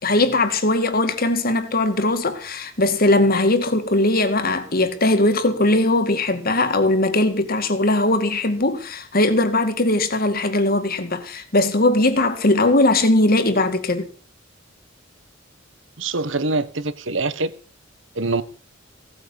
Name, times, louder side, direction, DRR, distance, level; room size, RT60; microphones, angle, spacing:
voice 1, 0.0-14.1, left 2 dB, 50° left, 2.2 m, -19 dB
voice 2, 16.0-17.5 18.1-18.4, right 3 dB, 70° right, 1.4 m, -24 dB
17.0 x 9.0 x 7.1 m
head